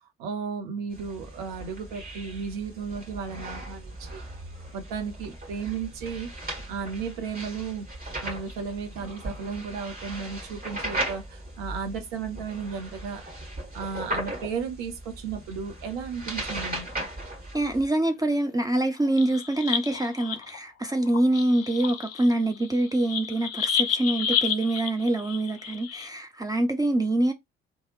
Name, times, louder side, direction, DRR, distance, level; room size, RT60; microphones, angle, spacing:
voice 1, 0.2-4.2 4.7-6.3 6.7-7.9 8.2-13.3 13.7-17.1, right 6 dB, 65° right, 0.7 m, -34 dB
sound 1, 0.9-17.9, right 1 dB, 30° right, 1.7 m, -37 dB
voice 2, 17.5-27.3, right 1 dB, 10° right, 0.5 m, -25 dB
sound 2, 19.0-20.6 21.1-26.1, left 8 dB, 50° left, 0.5 m, -30 dB
2.8 x 2.2 x 3.2 m
figure-of-eight pair, 45°, 32 cm